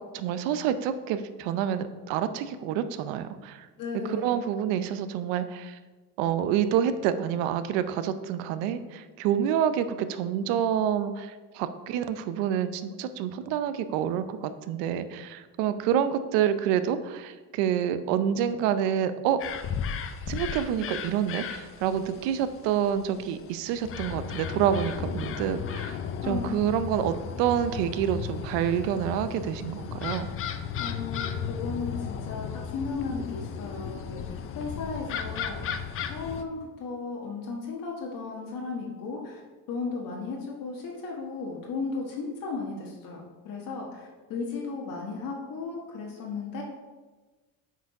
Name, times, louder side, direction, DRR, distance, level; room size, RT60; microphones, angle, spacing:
voice 1, 0.1-3.7 4.1-5.8 6.2-19.4 20.3-26.0 26.3-30.3, right 9 dB, 90° right, 11 dB, 0.7 m, -28 dB
voice 2, 3.8-4.5 26.2-26.6 30.8-35.7 36.1-39.4 39.7-46.6, left 4 dB, 55° left, -2 dB, 1.4 m, -35 dB
sound 1, 19.4-36.4, left 7 dB, 35° left, 0.5 m, -35 dB
8.1 x 4.7 x 4.8 m, 1.3 s
cardioid pair, 130°, 41 cm